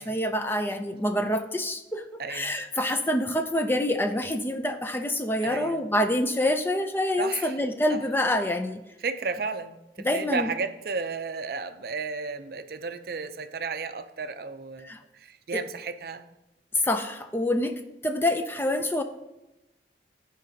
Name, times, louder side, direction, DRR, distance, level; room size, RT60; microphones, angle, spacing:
voice 1, 0.0-2.0 2.3-8.8 10.0-10.5 14.8-15.0 16.8-17.7 18.0-19.0, left 1 dB, 10° left, 7 dB, 0.4 m, -26 dB
voice 2, 2.2-2.6 5.4-5.9 7.2-7.6 7.9-8.0 9.0-16.3, right 4 dB, 55° right, 9 dB, 0.5 m, -33 dB
14.5 x 5.2 x 2.7 m, 0.99 s
head